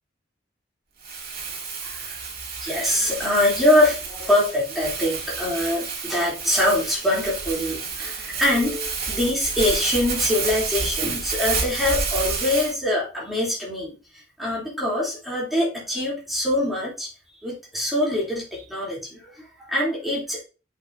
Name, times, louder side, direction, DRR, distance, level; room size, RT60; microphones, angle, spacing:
Crumpling crinkling, 1.0-12.7, right 5 dB, 55° right, 2.5 m, -30 dB
voice 1, 1.8-2.2 2.6-17.1 17.4-20.4, left 1 dB, ahead, -6 dB, 3.1 m, -24 dB
8.0 x 6.2 x 2.7 m, 0.33 s
head